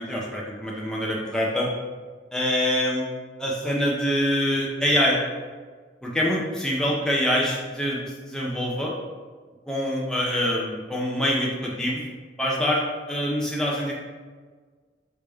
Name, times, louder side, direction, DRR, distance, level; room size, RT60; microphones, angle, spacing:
voice 1, 0.0-1.7 2.3-3.1 3.4-5.2 6.0-8.9 9.7-12.0 12.4-13.9, equal, 5° left, -4 dB, 0.6 m, -25 dB
3.9 x 3.4 x 3.4 m, 1.5 s
head